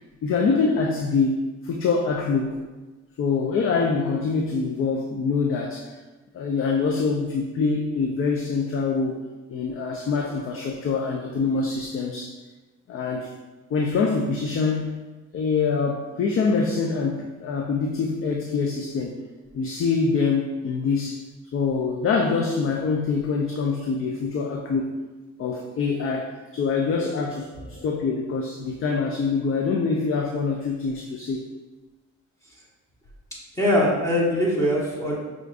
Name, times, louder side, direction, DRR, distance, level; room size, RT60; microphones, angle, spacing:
voice 1, 0.2-2.6 3.2-6.0 6.3-9.2 9.5-12.3 12.9-13.3 13.7-15.0 15.3-19.2 19.5-21.2 21.5-24.9 25.4-31.5, left 4 dB, 45° left, 1 dB, 0.4 m, -25 dB
voice 2, 33.6-35.1, equal, 10° left, -6 dB, 1.3 m, -22 dB
5.8 x 2.5 x 2.5 m, 1.2 s
cardioid pair, 90°, 30 cm